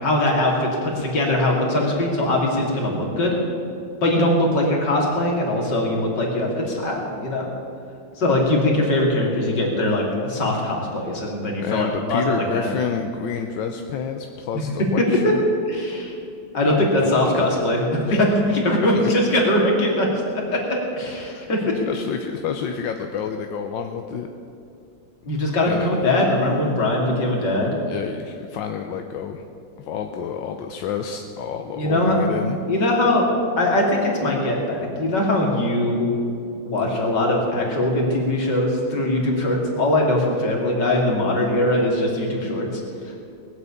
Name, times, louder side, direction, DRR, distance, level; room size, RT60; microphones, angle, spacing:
voice 1, 0.0-3.4 4.0-7.5 8.2-12.7 15.0-15.3 15.7-16.1 16.5-21.7 25.2-27.8 31.7-32.2 32.7-33.2 33.6-36.1 36.6-42.7, left 1 dB, 65° left, -1 dB, 3.4 m, -21 dB
voice 2, 11.6-15.5 16.7-18.2 18.8-19.1 21.2-21.5 21.9-24.3 25.6-26.0 27.9-29.4 29.8-32.6, left 7 dB, 90° left, 5 dB, 1.5 m, -29 dB
19.5 x 8.1 x 8.4 m, 2.5 s
omnidirectional pair, 2.0 m